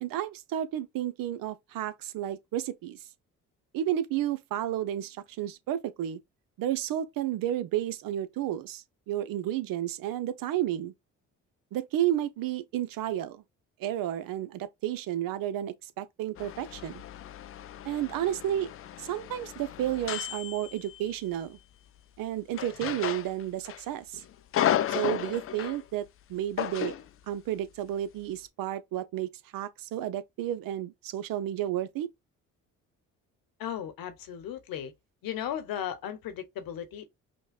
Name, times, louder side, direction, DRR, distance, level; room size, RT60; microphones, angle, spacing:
voice 1, 0.0-3.0 3.7-6.2 6.6-10.9 11.7-13.4 13.8-17.0 17.8-18.7 19.0-21.6 22.2-24.2 24.9-26.9 27.3-32.1, right 12 dB, 60° right, 0.6 m, -32 dB
sound 1, 16.4-21.3 22.5-23.8 24.1-25.8 26.6-27.1, left 11 dB, 40° left, 0.4 m, -33 dB
voice 2, 33.6-34.9 35.2-37.0, left 10 dB, 65° left, 1.0 m, -36 dB
5.2 x 2.1 x 2.4 m
hypercardioid pair, 55°, 38 cm